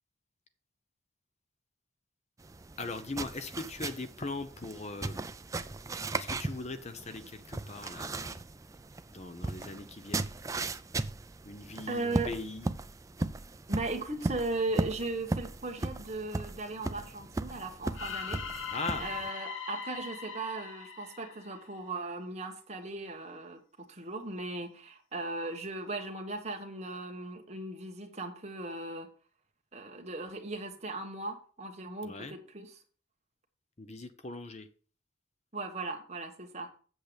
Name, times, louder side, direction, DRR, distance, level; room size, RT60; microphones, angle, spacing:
sound 1, 2.4-19.3, right 2 dB, 15° right, 0.4 m, -37 dB
voice 1, 2.8-5.3 6.2-8.4 9.1-10.3 11.4-12.7 18.7-19.1 32.0-32.4 33.8-34.7, left 3 dB, 35° left, 9 dB, 0.7 m, -40 dB
voice 2, 11.9-12.3 13.7-18.4 19.0-29.1 29.7-32.8 35.5-36.7, right 2 dB, 35° right, 3 dB, 1.4 m, -37 dB
sound 2, 17.9-22.0, left 6 dB, 75° left, 1.4 m, -40 dB
8.0 x 7.5 x 5.1 m, 0.40 s
head